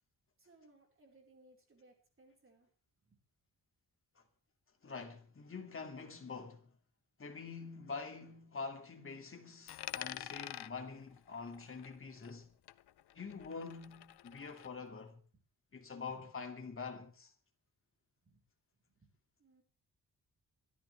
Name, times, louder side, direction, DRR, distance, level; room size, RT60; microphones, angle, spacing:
voice 1, 0.4-2.7 3.0-3.2 16.0-16.3 18.2-18.4 18.9-19.1 19.4-19.6, right 2 dB, 30° right, 4.6 m, -65 dB
voice 2, 4.8-6.7 7.2-12.5 13.1-15.2 15.7-17.3, left 4 dB, 30° left, 2.4 m, -46 dB
Coin (dropping), 9.7-12.4 12.7-14.7, left 12 dB, 75° left, 0.7 m, -48 dB
24.5 x 13.0 x 3.4 m
wide cardioid pair, 170°, 40 cm